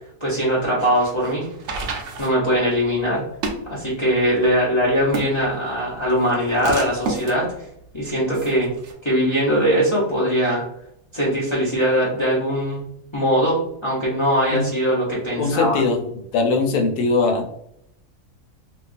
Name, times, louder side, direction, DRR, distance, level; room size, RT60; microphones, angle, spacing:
voice 1, 0.2-1.5 2.2-3.2 3.7-7.5 7.9-8.7 9.0-10.6 11.1-12.8 13.1-15.8, equal, 45° left, -7 dB, 0.4 m, -21 dB
sound 1, 0.6-8.9, right 3 dB, 65° right, 0.8 m, -32 dB
voice 2, 15.4-16.0 16.3-17.4, left 3 dB, 80° left, 3 dB, 1.1 m, -20 dB
2.6 x 2.3 x 2.4 m, 0.74 s
omnidirectional pair, 1.6 m